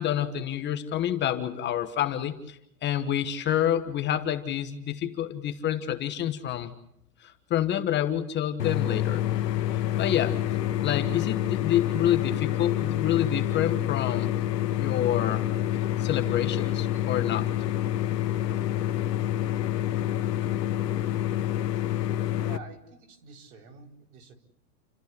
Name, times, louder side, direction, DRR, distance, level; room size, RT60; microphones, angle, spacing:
voice 1, 0.0-6.7 7.2-9.2 10.0-10.4 10.8-14.3 14.7-15.4 16.0-17.5, left 11 dB, 20° left, 8 dB, 1.3 m, -28 dB
sound 1, 8.6-22.6, left 12 dB, 80° left, 1.6 m, -27 dB
voice 2, 22.4-24.3, right 4 dB, 60° right, 4 dB, 4.5 m, -47 dB
29.5 x 14.0 x 9.7 m, 0.77 s
hypercardioid pair, 140°, 49 cm